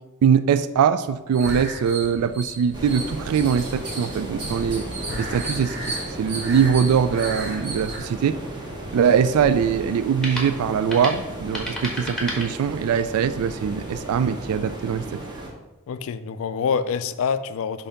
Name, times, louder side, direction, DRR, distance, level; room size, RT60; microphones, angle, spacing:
voice 1, 0.2-4.8 5.2-8.4 8.9-15.2, right 7 dB, 80° right, 15 dB, 0.3 m, -22 dB
sound 1, 1.3-8.0, right 2 dB, 50° right, 1.9 m, -34 dB
sound 2, 2.7-15.5, right 1 dB, 20° right, 1.0 m, -35 dB
sound 3, 8.3-13.1, left 1 dB, ahead, 1.3 m, -35 dB
voice 2, 15.9-17.9, left 6 dB, 65° left, 13 dB, 0.4 m, -26 dB
6.8 x 2.8 x 5.6 m, 1.1 s
head